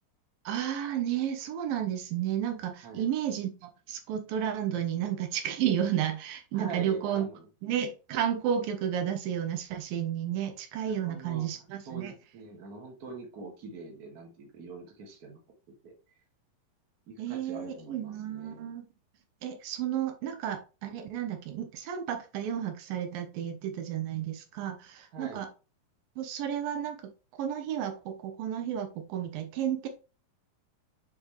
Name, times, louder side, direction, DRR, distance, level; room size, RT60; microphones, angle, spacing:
voice 1, 0.5-7.3 7.6-12.1 17.2-18.9 19.4-25.5 26.2-27.0 27.4-29.9, right 10 dB, 85° right, 6 dB, 2.8 m, -32 dB
voice 2, 6.5-7.5 10.8-11.5 11.9-15.4 15.8-15.9 17.1-18.7 25.1-25.4, right 4 dB, 35° right, 1 dB, 1.6 m, -44 dB
7.4 x 4.7 x 3.2 m, 0.31 s
omnidirectional pair, 4.0 m